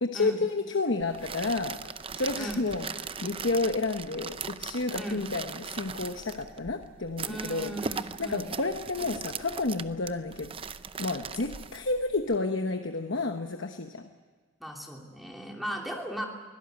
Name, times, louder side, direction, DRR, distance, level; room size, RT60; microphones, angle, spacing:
voice 1, 0.0-1.8 2.1-7.7 8.2-10.5 11.0-14.1, left 3 dB, 60° left, 6 dB, 1.1 m, -30 dB
sound 1, 1.0-12.4, right 6 dB, 25° right, 0.6 m, -39 dB
voice 2, 7.2-8.5 14.6-16.3, equal, ahead, 0 dB, 2.9 m, -37 dB
23.5 x 17.0 x 8.1 m, 1.5 s
head